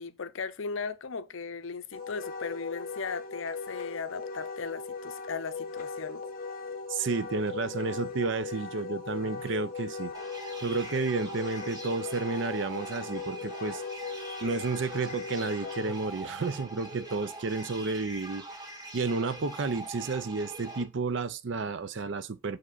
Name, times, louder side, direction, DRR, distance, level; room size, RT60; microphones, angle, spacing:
voice 1, 0.0-6.2, left 5 dB, 70° left, 0.6 m, -37 dB
Wind instrument woodwind instrument, 1.9-15.9, left 4 dB, 40° left, 1.0 m, -38 dB
voice 2, 6.9-10.1 10.6-13.8 14.4-18.4 18.9-22.6, right 4 dB, 60° right, 0.5 m, -31 dB
sound 1, 10.1-20.8, right 1 dB, 20° right, 1.3 m, -43 dB
6.0 x 5.0 x 3.9 m
head